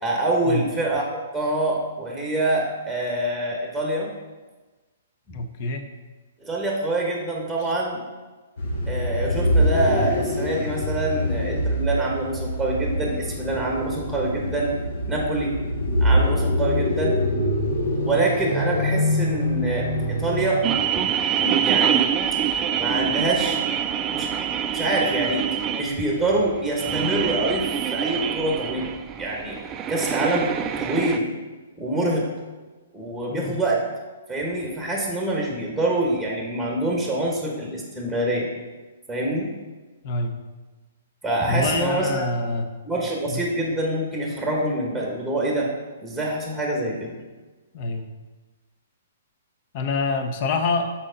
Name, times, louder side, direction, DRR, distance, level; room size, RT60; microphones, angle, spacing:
voice 1, 0.0-1.1 1.3-4.1 6.4-8.0 8.9-14.7 15.1-15.5 16.0-17.2 18.0-20.6 20.9-21.0 21.4-22.1 22.8-23.6 24.1-24.3 24.7-25.5 25.7-29.6 29.9-30.5 30.8-31.3 31.8-32.3 32.9-33.8 34.3-38.5 39.1-39.5 41.2-42.3 42.8-45.7 46.0-47.2, right 1 dB, ahead, -2 dB, 1.2 m, -25 dB
voice 2, 5.3-5.8 7.6-7.7 30.1-30.3 33.3-33.6 40.0-40.4 41.5-42.7 43.3-43.5 47.7-48.1 49.7-50.9, left 3 dB, 45° left, 6 dB, 0.7 m, -26 dB
sound 1, 8.6-20.7, equal, 70° left, 1.2 m, -24 dB
sound 2, 20.6-31.2, right 9 dB, 20° right, 0.4 m, -25 dB
6.2 x 4.3 x 3.9 m, 1.3 s
hypercardioid pair, 135°, 0 cm